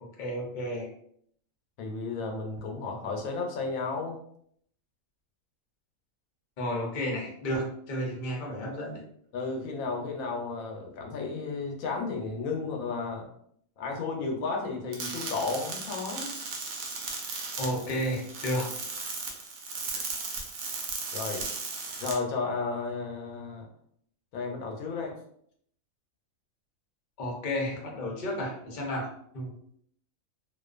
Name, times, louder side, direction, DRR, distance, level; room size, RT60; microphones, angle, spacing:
voice 1, 0.2-0.9 6.6-9.0 17.6-18.7 27.2-29.5, equal, 45° left, -1 dB, 0.7 m, -32 dB
voice 2, 1.8-4.2 9.3-13.3 13.8-16.3 21.1-21.5 22.0-23.7 24.3-25.2, left 4 dB, 85° left, 2 dB, 1.0 m, -33 dB
sound 1, 14.9-22.1, right 4 dB, 90° right, 1.1 m, -36 dB
2.4 x 2.4 x 2.3 m, 0.66 s
omnidirectional pair, 1.4 m